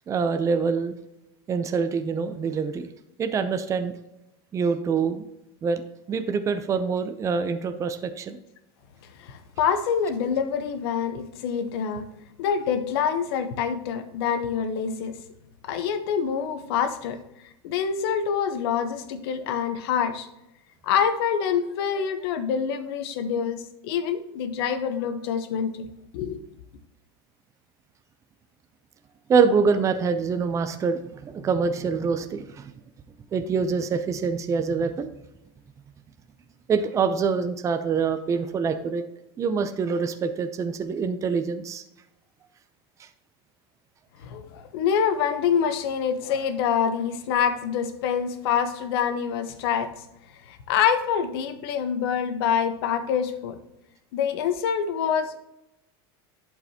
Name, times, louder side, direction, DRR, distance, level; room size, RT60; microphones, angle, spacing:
voice 1, 0.1-0.9 1.5-2.9 3.2-4.0 4.5-5.2 5.6-5.8 6.1-8.4 29.3-32.7 33.3-35.1 36.7-39.0 39.4-41.8, right 5 dB, 25° right, 10 dB, 0.6 m, -25 dB
voice 2, 9.3-12.0 12.4-15.1 15.7-17.2 17.6-20.3 20.8-25.9 26.1-26.4 44.2-49.9 50.7-53.6 54.1-55.4, left 7 dB, 70° left, 9 dB, 0.9 m, -26 dB
11.0 x 4.8 x 2.9 m, 0.90 s
supercardioid pair, 125°, 13 cm